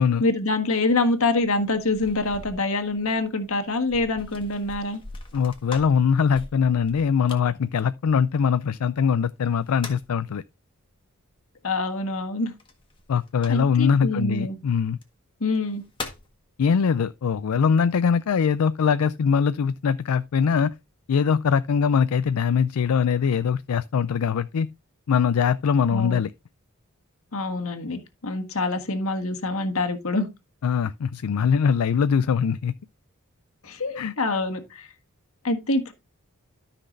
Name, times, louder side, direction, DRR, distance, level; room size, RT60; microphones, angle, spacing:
voice 1, 0.2-5.0 11.6-12.5 13.5-14.6 15.4-15.8 25.9-26.2 27.3-30.3 33.6-34.9 35.4-35.9, left 2 dB, 75° left, 1.5 m, -25 dB
sound 1, 1.4-8.8 9.4-10.2 12.6-13.9 14.9-15.0 15.5-16.4, left 3 dB, 25° left, 1.5 m, -42 dB
voice 2, 5.3-10.4 13.1-15.0 16.6-20.7 21.1-24.7 25.1-26.3 30.6-32.7 34.0-34.1, left 6 dB, 90° left, 0.4 m, -22 dB
13.0 x 5.9 x 2.6 m
head